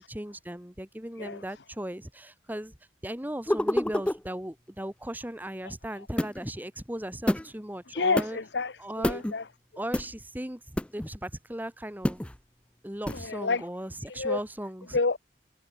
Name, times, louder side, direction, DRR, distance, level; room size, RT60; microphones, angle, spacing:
voice 1, 0.0-2.7 3.0-8.4 8.8-9.2 9.8-12.2 12.8-15.0, right 1 dB, 10° right, 1.5 m, -37 dB
sound 1, 3.5-4.2 6.2-6.5 7.3-7.5 8.2-8.3 9.0-9.3 9.9-10.1 10.8-11.1 12.0-12.4 13.1-13.3, left 1 dB, 5° left, 0.3 m, -27 dB
voice 2, 7.9-9.5 13.1-13.6 14.1-14.4 14.9-15.2, left 4 dB, 75° left, 1.0 m, -29 dB
head